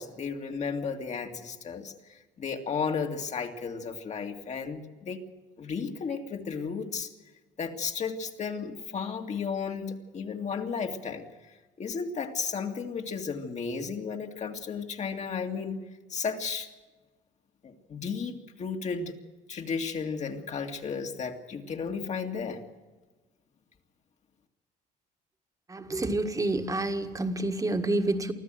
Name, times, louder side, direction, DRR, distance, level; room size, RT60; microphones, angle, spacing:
voice 1, 0.0-5.2 5.6-7.1 7.6-16.7 17.6-19.1 19.5-22.6, left 5 dB, 45° left, 4 dB, 2.3 m, -34 dB
voice 2, 25.7-28.3, right 2 dB, 20° right, 7 dB, 1.8 m, -28 dB
24.5 x 15.0 x 7.7 m, 1.3 s
cardioid pair, 110°, 17 cm